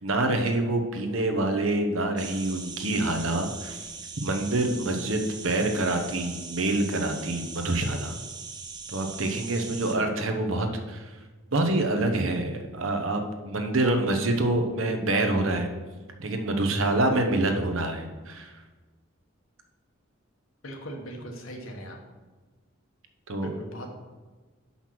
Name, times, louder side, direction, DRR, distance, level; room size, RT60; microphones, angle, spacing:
voice 1, 0.0-3.9 4.2-8.1 8.9-11.0 11.5-15.7 16.2-18.5 23.3-23.6, right 2 dB, 75° right, 5 dB, 1.0 m, -26 dB
sound 1, 2.2-10.0, right 4 dB, 20° right, 0.7 m, -41 dB
voice 2, 20.6-22.0 23.3-23.9, equal, 80° left, 2 dB, 1.4 m, -40 dB
6.1 x 5.6 x 5.9 m, 1.3 s
head